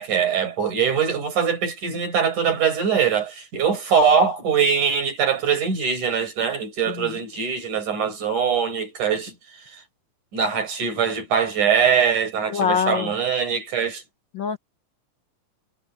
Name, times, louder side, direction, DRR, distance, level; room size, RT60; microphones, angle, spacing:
voice 1, 0.0-9.3 9.7-9.8 10.3-14.0, right 6 dB, 75° right, 7.1 m, -22 dB
voice 2, 12.5-13.1 14.3-14.6, left 7 dB, 75° left, 1.1 m, -24 dB
omnidirectional pair, 3.5 m